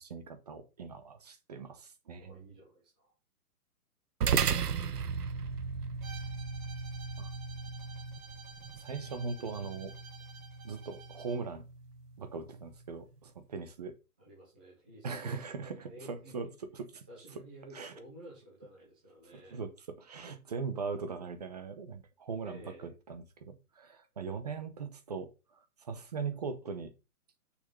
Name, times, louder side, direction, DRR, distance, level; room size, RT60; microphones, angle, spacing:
voice 1, 0.0-2.4 7.2-7.3 8.8-9.9 10.6-11.6 12.2-13.9 15.0-17.0 17.3-17.4 17.7-17.9 19.3-25.3 25.8-26.9, right 5 dB, 25° right, 0.9 m, -40 dB
voice 2, 2.2-3.1 14.2-16.5 17.1-19.6 21.2-21.3 22.4-23.0, right 1 dB, 5° right, 0.6 m, -52 dB
sound 1, 4.2-12.9, right 6 dB, 85° right, 1.1 m, -36 dB
Bowed string instrument, 6.0-11.5, right 5 dB, 60° right, 2.5 m, -52 dB
6.5 x 6.4 x 5.4 m
hypercardioid pair, 170°, 45 cm